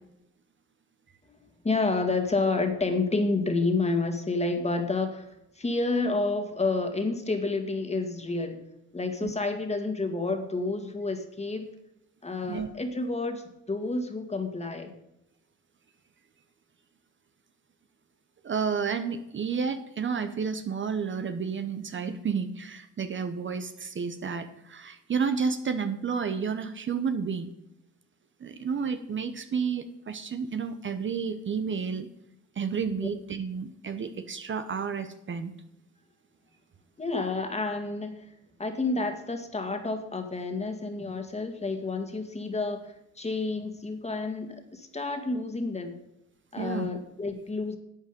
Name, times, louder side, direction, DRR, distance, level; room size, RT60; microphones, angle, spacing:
voice 1, 1.6-8.6 8.9-11.7 12.2-14.9 37.0-38.3 38.6-46.0 46.5-47.8, left 3 dB, 20° left, 6 dB, 1.9 m, -29 dB
voice 2, 18.4-27.5 28.4-32.1 32.6-35.5 46.6-46.9, right 6 dB, 40° right, 9 dB, 0.9 m, -31 dB
12.0 x 8.1 x 5.2 m, 0.83 s
cardioid pair, 90°, 30 cm